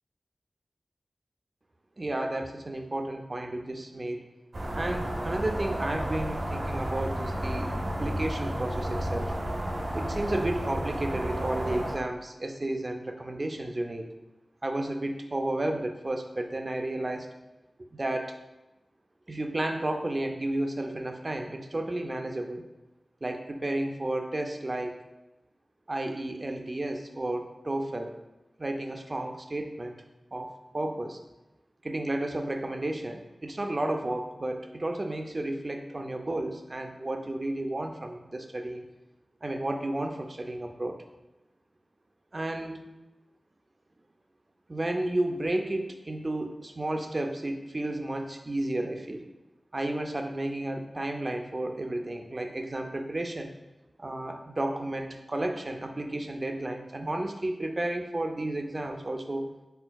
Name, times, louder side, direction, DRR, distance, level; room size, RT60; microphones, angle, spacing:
voice 1, 2.0-4.2 4.7-9.3 9.9-14.1 14.6-17.3 17.9-18.3 19.3-22.6 23.2-25.0 25.9-28.2 28.6-30.0 30.3-31.2 31.8-38.9 39.4-41.0 42.3-42.8 44.7-49.3 49.7-53.5 54.0-59.5, right 1 dB, 40° right, 5 dB, 0.4 m, -32 dB
sound 1, 4.5-11.9, right 1 dB, 70° right, 0.8 m, -32 dB
4.4 x 4.4 x 2.3 m, 1.0 s
wide cardioid pair, 80°, 0 cm